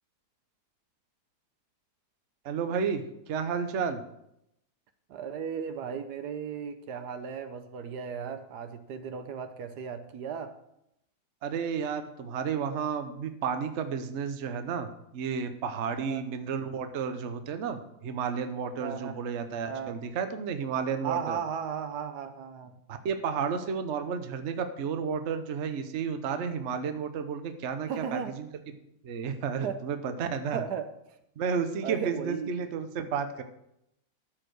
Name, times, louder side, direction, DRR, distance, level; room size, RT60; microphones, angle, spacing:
voice 1, 2.4-4.0 11.4-21.4 22.9-28.5 29.0-30.6 31.4-33.4, right 6 dB, 50° right, 8 dB, 1.0 m, -32 dB
voice 2, 5.1-10.5 16.0-16.2 18.8-19.2 19.7-20.0 21.0-22.8 27.9-28.3 29.6-29.8 30.5-31.2 31.8-32.5, right 7 dB, 75° right, 9 dB, 1.3 m, -36 dB
13.0 x 4.9 x 6.4 m, 0.80 s
omnidirectional pair, 1.8 m